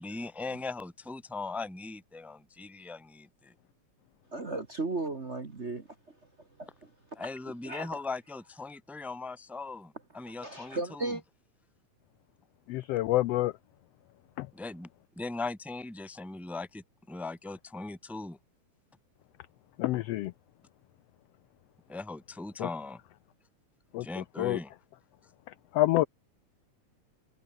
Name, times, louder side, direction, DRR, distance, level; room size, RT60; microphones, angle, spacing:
voice 1, 0.0-3.5 7.2-11.2 14.5-14.9 15.1-18.4 21.9-23.0 24.0-24.7, left 3 dB, ahead, 1.0 m, -39 dB
voice 2, 4.3-6.2 6.6-6.9 7.2-8.0 10.1-11.2, right 2 dB, 30° right, 1.3 m, -36 dB
voice 3, 12.7-13.5 14.4-14.5 19.8-20.3 22.6-22.7 23.9-24.6 25.7-26.1, left 16 dB, 85° left, 1.4 m, -27 dB
omnidirectional pair, 3.4 m